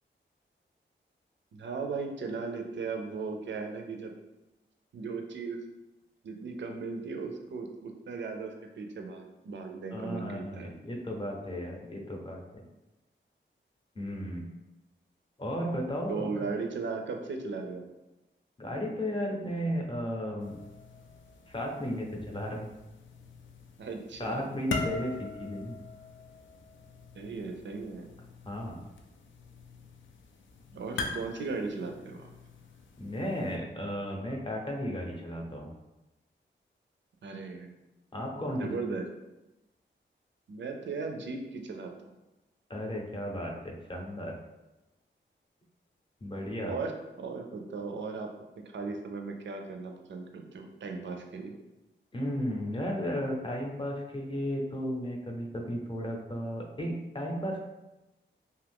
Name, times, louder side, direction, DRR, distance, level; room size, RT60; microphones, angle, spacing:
voice 1, 1.5-4.1 4.9-5.6 6.2-10.7 16.1-17.9 23.8-24.4 25.2-25.3 27.2-28.1 30.7-32.3 37.2-37.7 38.6-39.0 40.5-42.1 46.6-48.3 48.6-51.6, right 4 dB, 65° right, 4 dB, 0.5 m, -37 dB
voice 2, 9.9-12.7 14.0-14.5 15.4-16.4 18.6-20.6 21.5-22.7 24.2-25.7 28.5-28.8 33.0-35.7 38.1-38.6 42.7-44.3 46.2-46.8 52.1-57.6, equal, 25° left, 0 dB, 0.6 m, -34 dB
sound 1, 20.4-33.6, left 3 dB, 75° left, 0.4 m, -43 dB
2.7 x 2.4 x 3.4 m, 1.0 s
wide cardioid pair, 80°, 20 cm